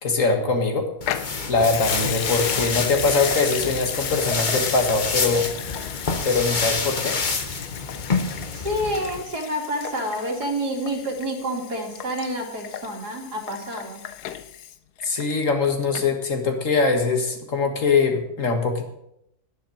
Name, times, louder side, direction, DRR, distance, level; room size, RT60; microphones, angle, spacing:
voice 1, 0.0-0.9 1.5-5.5 6.2-7.2 15.0-18.9, left 4 dB, 55° left, 4 dB, 2.0 m, -22 dB
Water tap faucet / Sink (filling or washing) / Liquid, 1.0-15.7 15.9-16.0, left 10 dB, 80° left, 1.3 m, -35 dB
sound 1, 1.0-9.2, left 4 dB, 35° left, 1.1 m, -27 dB
voice 2, 8.5-14.0, equal, 80° right, 1 dB, 3.0 m, -28 dB
10.5 x 10.5 x 6.4 m, 0.78 s
omnidirectional pair, 1.7 m